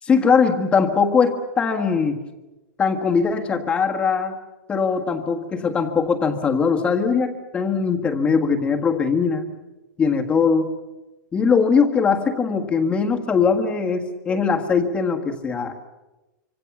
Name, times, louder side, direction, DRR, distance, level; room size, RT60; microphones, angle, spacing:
voice 1, 0.0-2.2 2.8-4.4 4.7-9.5 10.0-10.7 11.3-15.8, left 5 dB, 10° left, 4 dB, 1.6 m, -20 dB
25.5 x 25.5 x 7.2 m, 1.1 s
hypercardioid pair, 170°, 11 cm